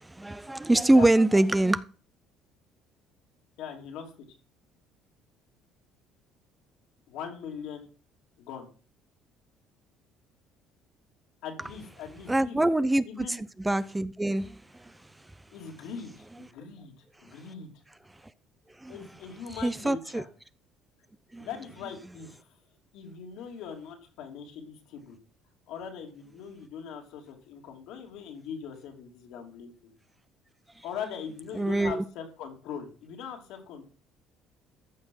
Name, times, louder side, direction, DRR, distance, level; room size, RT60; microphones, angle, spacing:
voice 1, 0.0-1.8 12.3-14.9 18.8-18.9 19.5-20.2 21.3-21.5 31.5-32.0, right 1 dB, 10° right, 0.6 m, -24 dB
voice 2, 3.6-4.1 7.1-7.9 8.4-8.7 11.4-12.6 13.0-13.4 15.5-16.9 17.2-17.7 18.9-20.3 21.4-22.5 22.9-25.2 25.7-29.7 30.8-33.8, left 7 dB, 75° left, 2.9 m, -41 dB
14.0 x 6.1 x 5.5 m
cardioid pair, 95°, 0 cm